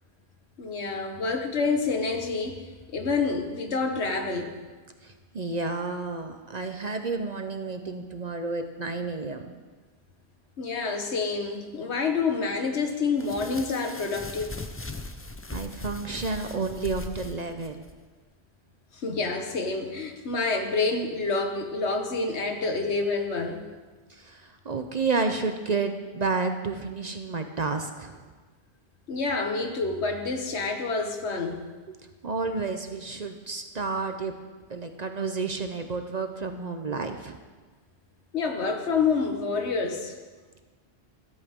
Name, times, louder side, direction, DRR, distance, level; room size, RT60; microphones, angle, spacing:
voice 1, 0.6-2.6 2.9-4.6 10.6-14.5 18.9-23.7 29.1-31.7 38.3-40.2, left 4 dB, 75° left, 4 dB, 1.5 m, -28 dB
voice 2, 5.0-9.5 15.5-17.8 24.1-28.2 32.2-34.3 34.7-37.4, right 4 dB, 45° right, 6 dB, 0.7 m, -31 dB
sound 1, 13.2-17.9, left 2 dB, 20° left, 0.4 m, -39 dB
13.0 x 13.0 x 3.6 m, 1.4 s
omnidirectional pair, 1.1 m